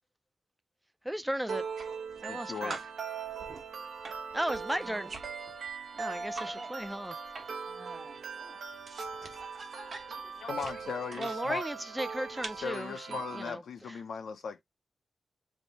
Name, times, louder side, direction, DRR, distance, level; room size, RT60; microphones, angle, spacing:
voice 1, 1.0-1.6 2.2-2.8 4.3-5.1 5.9-7.1 11.2-13.6 13.9-14.0, right 1 dB, 5° right, 0.3 m, -35 dB
sound 1, 1.5-2.4 2.7-6.5 6.8-7.7 8.0-11.4 12.0-12.7, right 4 dB, 55° right, 1.1 m, -46 dB
sound 2, 1.5-13.5, right 5 dB, 80° right, 0.8 m, -40 dB
voice 2, 2.3-2.8 6.1-6.2 10.4-11.7 12.6-14.6, left 6 dB, 85° left, 0.5 m, -38 dB
voice 3, 4.7-5.2 6.1-6.8 7.6-8.7 9.4-10.3, right 3 dB, 35° right, 1.2 m, -50 dB
3.3 x 2.7 x 4.0 m
wide cardioid pair, 175°, 0 cm